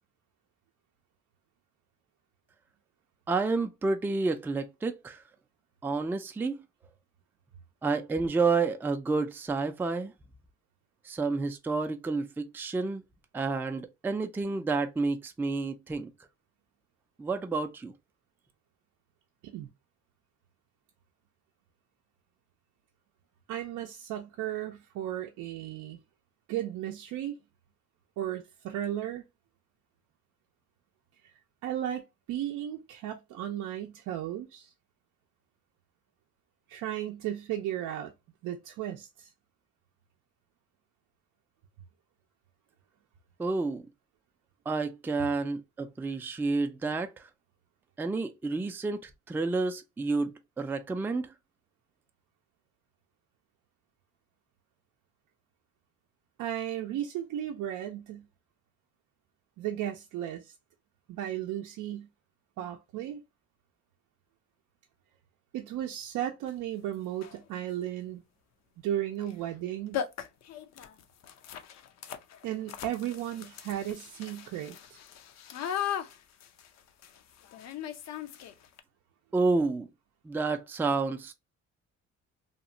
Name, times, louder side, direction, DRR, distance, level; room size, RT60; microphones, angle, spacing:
voice 1, 3.3-5.2 5.8-6.6 7.8-10.1 11.0-13.0 13.3-16.1 17.2-17.9 43.4-43.8 44.7-47.3 48.0-51.3 79.3-79.9 80.2-81.3, right 3 dB, 5° right, 0.3 m, -30 dB
voice 2, 23.5-26.0 26.5-27.4 28.2-29.2 31.2-31.3 31.6-34.7 36.7-38.1 38.4-39.3 56.4-58.3 59.6-60.5 61.1-62.1 62.6-63.2 65.5-68.2 68.8-70.0 72.4-75.0, right 11 dB, 80° right, 0.5 m, -35 dB
sound 1, 66.5-66.6 67.1-67.5 69.2-69.4 69.6-69.7 69.9-78.8, left 9 dB, 60° left, 0.5 m, -39 dB
2.9 x 2.1 x 2.5 m
cardioid pair, 90°, 30 cm